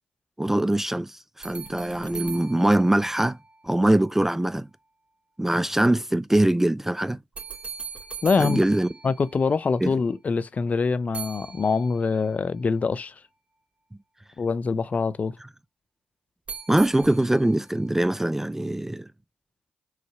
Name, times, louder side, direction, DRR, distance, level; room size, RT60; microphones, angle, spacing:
voice 1, 0.4-3.4 3.6-4.7 5.4-7.2 8.4-8.9 9.8-9.9 16.7-19.1, right 1 dB, 10° right, 0.3 m, -22 dB
sound 1, 1.4-3.8 7.3-9.9 11.1-12.3 16.5-17.7, right 6 dB, 40° right, 2.6 m, -40 dB
voice 2, 8.2-8.6 9.0-13.1 14.4-15.4, left 4 dB, 45° left, 0.6 m, -24 dB
4.9 x 4.0 x 5.8 m
supercardioid pair, 50°, 4 cm